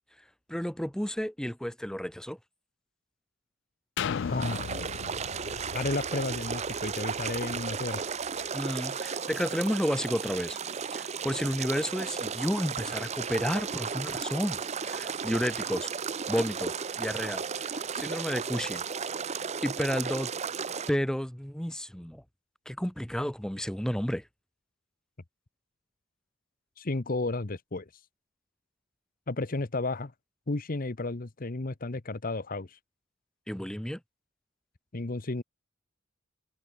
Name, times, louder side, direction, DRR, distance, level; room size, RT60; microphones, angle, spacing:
voice 1, 0.5-2.4 8.5-10.6 10.9-15.9 16.3-18.8 19.6-20.3 20.9-22.2 22.7-24.2 33.5-34.0, equal, 5° left, 0.7 m, -31 dB
sound 1, 4.0-7.7 8.3-8.4, left 7 dB, 60° left, 0.4 m, -37 dB
Water, 4.1-19.1, right 11 dB, 80° right, 6.0 m, -55 dB
voice 2, 4.3-4.7 5.7-8.0 26.8-27.9 29.3-30.1 30.5-32.8 34.9-35.4, left 2 dB, 45° left, 1.0 m, -32 dB
sound 2, 4.4-20.9, right 6 dB, 35° right, 0.7 m, -34 dB
head